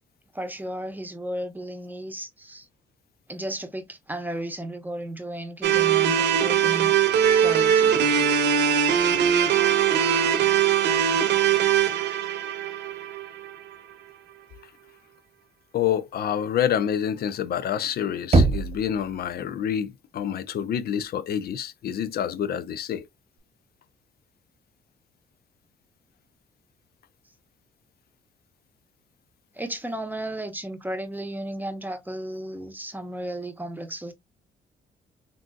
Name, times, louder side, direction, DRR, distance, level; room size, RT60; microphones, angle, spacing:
voice 1, 0.3-2.7 3.3-6.9 7.3-8.0 29.5-34.1, right 1 dB, 10° right, 0.9 m, -34 dB
sound 1, 5.6-13.7, right 8 dB, 70° right, 0.8 m, -21 dB
voice 2, 15.7-23.1, left 9 dB, 55° left, 0.5 m, -27 dB
Knock, 18.3-19.2, right 2 dB, 35° right, 0.6 m, -21 dB
3.6 x 2.6 x 2.3 m
supercardioid pair, 55°, 18 cm